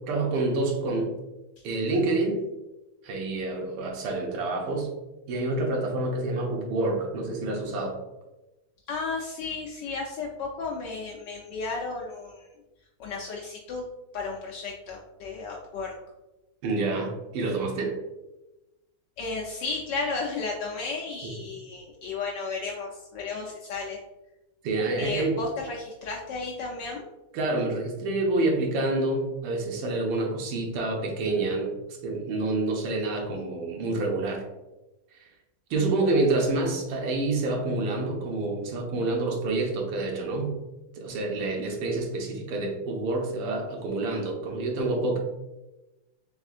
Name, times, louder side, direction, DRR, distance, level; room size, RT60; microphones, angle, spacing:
voice 1, 0.1-1.1 1.6-2.4 3.0-4.9 5.3-8.0 16.6-18.0 21.2-21.3 24.6-25.3 27.3-34.4 35.1-35.3 35.7-40.6 41.0-45.2, right 2 dB, 85° right, 1 dB, 1.7 m, -27 dB
voice 2, 8.9-12.5 13.0-13.9 14.1-15.9 19.2-24.0 25.0-27.0, left 4 dB, 75° left, -1 dB, 1.0 m, -33 dB
4.2 x 3.6 x 2.4 m, 1.0 s
omnidirectional pair, 2.4 m